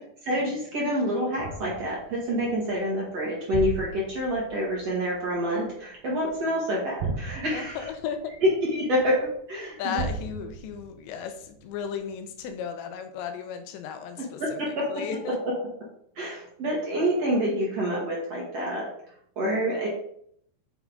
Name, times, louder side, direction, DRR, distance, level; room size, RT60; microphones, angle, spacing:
voice 1, 0.3-7.8 8.4-10.1 14.4-14.9 16.2-18.9 19.4-19.9, equal, 50° right, -4 dB, 2.1 m, -27 dB
sound 1, 1.4-6.4 6.9-9.3 9.9-12.0 12.4-12.5, right 3 dB, 65° right, 2.8 m, -37 dB
voice 2, 7.5-8.3 9.8-15.4, left 7 dB, 85° left, 7 dB, 3.0 m, -35 dB
8.1 x 5.9 x 3.9 m, 0.67 s
omnidirectional pair, 5.1 m